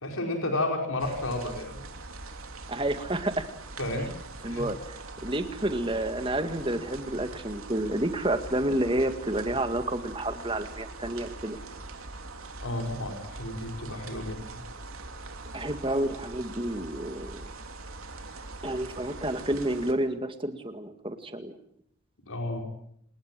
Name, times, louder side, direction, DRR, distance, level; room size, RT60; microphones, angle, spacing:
voice 1, 0.0-1.8 3.8-4.1 4.5-4.7 12.6-14.6 22.3-22.7, left 1 dB, 90° left, 3 dB, 5.2 m, -32 dB
sound 1, 1.0-19.9, right 2 dB, 90° right, 3.2 m, -42 dB
voice 2, 2.7-3.5 4.4-11.6 15.5-17.4 18.6-21.5, right 1 dB, 25° right, 8 dB, 2.0 m, -30 dB
28.5 x 20.0 x 7.6 m, 0.70 s
head